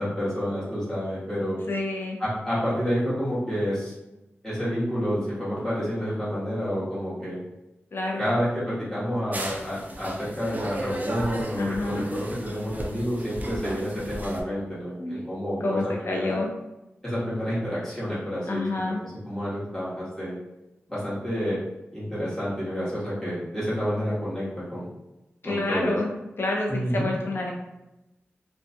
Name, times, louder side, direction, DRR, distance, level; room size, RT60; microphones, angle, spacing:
voice 1, 0.0-1.6 2.2-3.9 4.4-7.4 8.2-16.4 17.0-20.3 20.9-21.6 21.9-24.9 25.4-25.9 26.7-27.1, equal, 5° left, -12 dB, 1.2 m, -29 dB
voice 2, 1.7-2.2 7.9-8.2 11.6-12.1 15.0-15.1 15.6-16.5 18.5-19.0 25.4-26.1 26.4-27.5, left 2 dB, 55° left, -1 dB, 0.6 m, -28 dB
sound 1, 9.3-14.4, right 1 dB, 40° right, 0.5 m, -35 dB
2.6 x 2.3 x 2.6 m, 0.97 s
cardioid pair, 60°, 5 cm